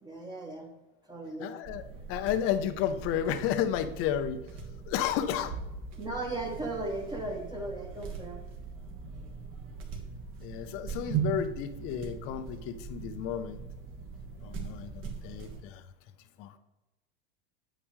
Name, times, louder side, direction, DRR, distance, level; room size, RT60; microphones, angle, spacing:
voice 1, 0.0-0.7 1.0-1.6 6.0-8.4, right 2 dB, 15° right, 0 dB, 1.4 m, -37 dB
voice 2, 1.4-4.4 4.9-5.5 10.4-13.6 14.4-15.8 16.4-16.6, left 9 dB, 45° left, 11 dB, 0.8 m, -32 dB
sound 1, 1.6-15.6, right 6 dB, 45° right, 1.7 m, -40 dB
9.0 x 8.5 x 3.2 m, 0.99 s
supercardioid pair, 125°, 29 cm